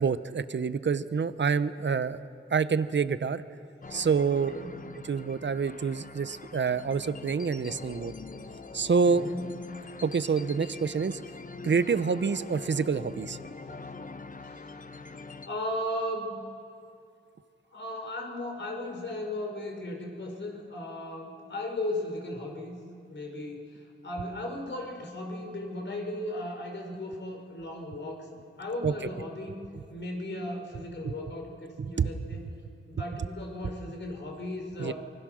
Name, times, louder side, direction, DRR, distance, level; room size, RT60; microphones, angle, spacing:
voice 1, 0.0-2.2 2.5-3.4 3.9-4.5 5.0-8.1 8.7-9.2 10.0-11.2 11.6-13.4 28.8-28.9 31.0-31.1 32.0-32.1 34.8-34.9, right 5 dB, 60° right, 13 dB, 0.9 m, -27 dB
sound 1, 3.8-15.5, left 4 dB, 40° left, 1.0 m, -43 dB
voice 2, 9.0-9.5 15.4-16.4 17.7-22.8 23.1-28.3 28.6-29.6 29.9-32.4 32.9-34.9, left 1 dB, 60° left, 2 dB, 4.6 m, -36 dB
25.5 x 23.5 x 6.4 m, 2.5 s
cardioid pair, 65°, 21 cm